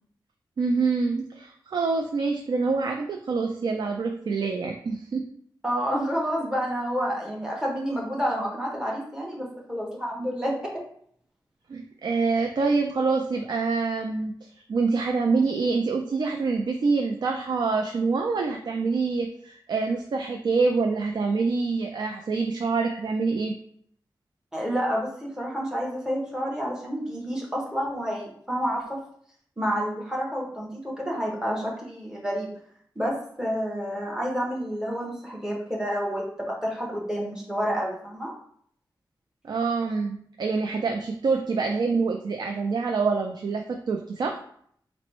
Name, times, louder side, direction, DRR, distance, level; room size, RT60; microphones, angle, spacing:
voice 1, 0.6-5.3 11.7-23.5 39.4-44.4, right 4 dB, 65° right, 3 dB, 0.4 m, -26 dB
voice 2, 5.6-10.6 24.5-29.0 29.6-32.5 33.0-38.3, equal, 10° right, -3 dB, 0.9 m, -29 dB
4.0 x 2.0 x 4.5 m, 0.64 s
wide cardioid pair, 155°, 8 cm